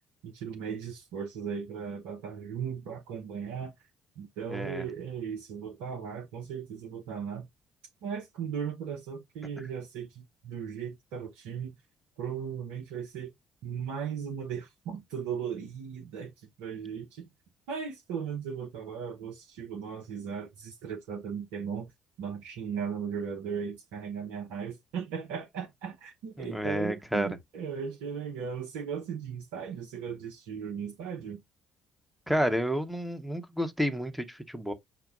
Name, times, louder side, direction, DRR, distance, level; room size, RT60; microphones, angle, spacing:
voice 1, 0.2-3.7 4.2-7.5 8.0-11.7 12.2-13.3 13.6-17.3 17.7-21.9 22.2-31.4, right 7 dB, 70° right, 0.7 m, -37 dB
voice 2, 4.5-4.9 26.4-27.3 32.3-34.7, equal, ahead, 0.9 m, -30 dB
5.7 x 2.2 x 3.6 m
figure-of-eight pair, 45°, 2 cm